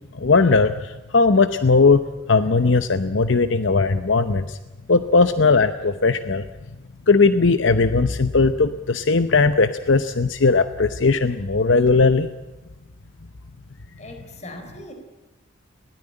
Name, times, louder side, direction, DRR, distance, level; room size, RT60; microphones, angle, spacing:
voice 1, 0.1-2.0 2.3-4.6 4.9-6.4 7.1-12.3, left 4 dB, 65° left, 11 dB, 0.8 m, -18 dB
voice 2, 14.0-14.9, left 1 dB, 35° left, 5 dB, 4.0 m, -39 dB
21.0 x 17.0 x 9.9 m, 1.1 s
head